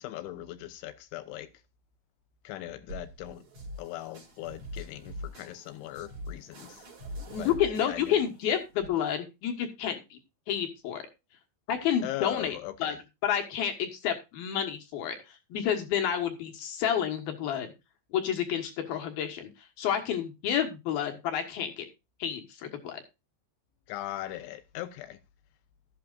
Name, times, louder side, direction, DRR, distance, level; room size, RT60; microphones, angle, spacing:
voice 1, 0.0-1.5 2.5-3.5 3.8-6.9 7.4-8.2 12.0-13.0 23.9-25.2, left 14 dB, 80° left, 3.3 m, -39 dB
sound 1, 2.9-8.9, equal, 40° right, 4.6 m, -43 dB
voice 2, 7.3-10.2 10.5-11.0 11.7-13.0 13.2-17.7 18.1-19.5 19.8-21.9 22.2-23.0, left 9 dB, 65° left, 2.9 m, -30 dB
13.0 x 11.5 x 2.5 m
omnidirectional pair, 5.4 m